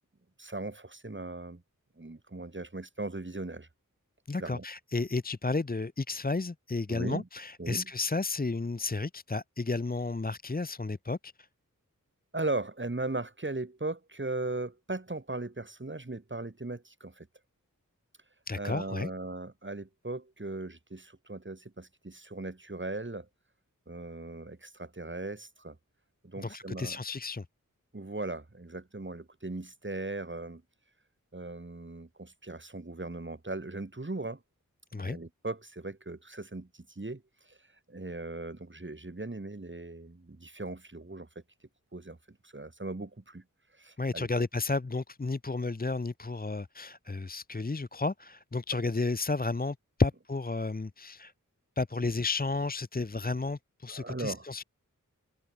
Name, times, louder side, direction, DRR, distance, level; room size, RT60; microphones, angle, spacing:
voice 1, 0.4-1.6 2.0-3.7 4.4-4.6 6.9-7.3 7.6-7.9 12.3-17.3 18.6-23.3 23.9-25.8 26.2-27.0 27.9-30.6 31.3-34.4 34.9-37.6 37.9-41.3 41.9-43.4 43.8-44.3 53.9-54.5, right 2 dB, 35° right, 3.2 m, -38 dB
voice 2, 4.3-11.3 18.5-19.1 26.4-27.4 34.9-35.2 44.0-51.3 51.8-54.6, left 3 dB, 25° left, 0.8 m, -32 dB
wide cardioid pair, 60°, 33 cm